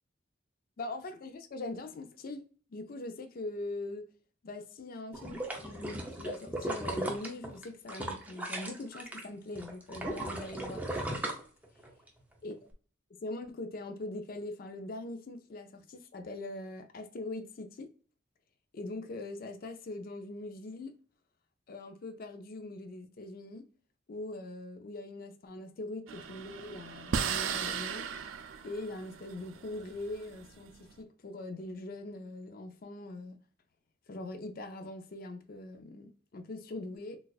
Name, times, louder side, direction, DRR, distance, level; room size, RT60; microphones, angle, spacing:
voice 1, 0.8-2.4 2.7-4.0 4.4-11.2 12.4-12.5 13.1-17.9 18.7-20.9 21.7-23.6 24.1-28.1 28.6-33.4 34.1-37.2, left 2 dB, 50° left, 0.4 m, -42 dB
sound 1, 5.1-9.2 9.6-12.1 12.5-12.6, right 1 dB, 10° right, 0.5 m, -37 dB
sound 2, 26.1-30.7, right 7 dB, 85° right, 0.4 m, -37 dB
4.0 x 2.3 x 2.3 m
head